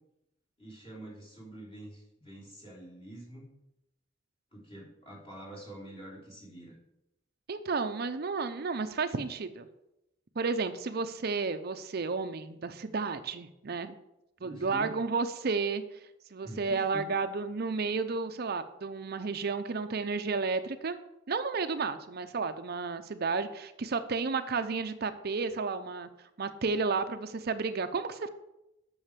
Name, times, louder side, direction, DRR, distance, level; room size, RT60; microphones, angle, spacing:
voice 1, 0.6-3.4 4.5-6.7 14.4-15.0 16.4-17.1, right 1 dB, 30° left, -4 dB, 3.9 m, -46 dB
voice 2, 7.5-9.7 10.4-13.9 14.4-15.8 16.3-21.0 21.3-26.1 26.4-28.3, right 4 dB, 55° right, 9 dB, 0.6 m, -32 dB
8.9 x 6.3 x 6.7 m, 0.88 s
head